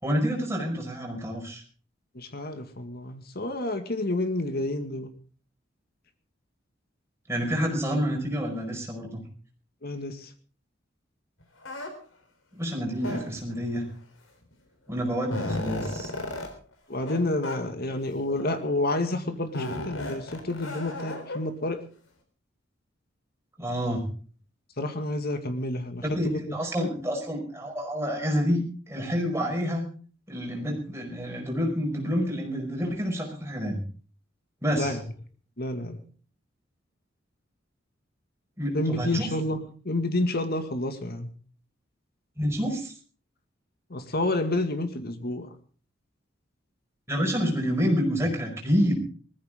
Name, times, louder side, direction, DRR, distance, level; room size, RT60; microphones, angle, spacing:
voice 1, 0.0-1.6 7.3-9.2 12.5-13.9 14.9-16.1 23.6-24.1 26.0-29.8 30.3-33.8 34.6-35.0 38.6-39.3 42.4-42.9 47.1-49.0, equal, 15° right, 1 dB, 5.1 m, -28 dB
voice 2, 2.1-5.1 9.8-10.3 16.9-21.8 24.8-26.9 34.8-35.0 35.6-36.0 38.7-39.6 39.8-41.3 43.9-45.5, left 2 dB, 55° left, 8 dB, 2.1 m, -29 dB
sound 1, 11.6-11.9 13.0-13.5 14.5-14.6 15.0-16.5 17.0-17.2 17.4-17.6 18.3-18.7 19.5-21.4, left 2 dB, 85° left, 3.9 m, -34 dB
20.0 x 14.5 x 3.8 m, 0.40 s
head